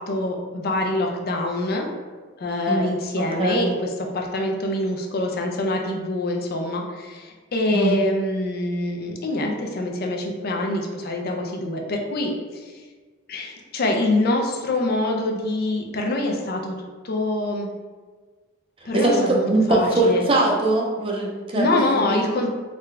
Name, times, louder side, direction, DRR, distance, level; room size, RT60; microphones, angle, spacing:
voice 1, 0.0-1.9 2.4-12.7 13.3-16.8 17.0-17.7 18.8-20.3 21.6-22.5, left 2 dB, 50° left, 2 dB, 0.5 m, -25 dB
voice 2, 2.7-3.7 7.7-7.9 18.9-21.7 22.1-22.2, right 2 dB, 30° right, -2 dB, 0.5 m, -21 dB
3.8 x 2.2 x 3.2 m, 1.4 s
head